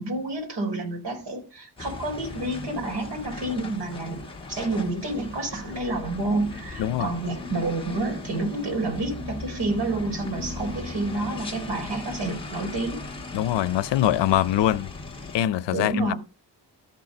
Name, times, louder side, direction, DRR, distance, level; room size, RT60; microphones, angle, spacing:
voice 1, 0.0-4.2 4.5-13.0 15.7-16.2, right 2 dB, 70° right, 4.4 m, -29 dB
sound 1, 1.8-15.4, left 3 dB, 10° left, 1.2 m, -39 dB
sound 2, 6.2-15.4, left 1 dB, 20° right, 2.3 m, -42 dB
voice 2, 13.3-14.9 15.3-16.1, left 12 dB, 85° left, 0.6 m, -23 dB
13.0 x 4.5 x 5.2 m
wide cardioid pair, 175°, 42 cm